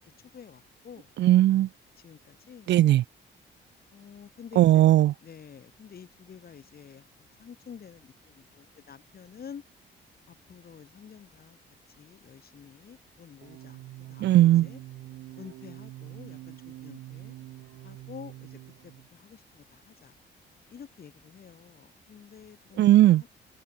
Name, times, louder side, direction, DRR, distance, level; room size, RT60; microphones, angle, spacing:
voice 1, 0.3-1.1 2.0-2.7 3.9-4.8 5.2-9.6 10.3-11.6 12.0-13.8 14.1-14.8 15.4-17.4 17.8-20.1 20.7-23.3, left 7 dB, 50° left, 5.0 m, -49 dB
voice 2, 1.2-1.7 2.7-3.0 4.6-5.1 14.2-14.7 22.8-23.2, right 14 dB, 65° right, 0.4 m, -18 dB
sound 1, 13.4-19.1, right 15 dB, 90° right, 2.9 m, -45 dB
cardioid pair, 90°, 20 cm